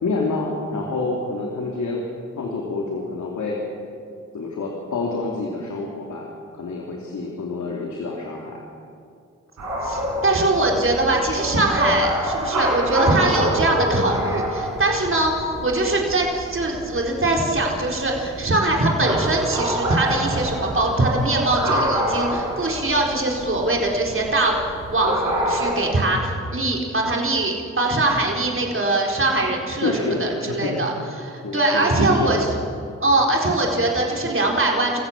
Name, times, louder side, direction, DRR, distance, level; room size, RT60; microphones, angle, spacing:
voice 1, 0.0-2.0 2.4-3.6 4.3-6.3 6.5-8.6 29.8-30.8 31.4-32.3, left 3 dB, 75° left, -1 dB, 2.9 m, -27 dB
sound 1, 9.6-25.9, right 1 dB, 80° right, 5.5 m, -27 dB
voice 2, 9.8-32.5 33.0-35.0, right 2 dB, 45° right, 0 dB, 4.3 m, -22 dB
27.0 x 15.0 x 7.3 m, 2.4 s
supercardioid pair, 45°, 29 cm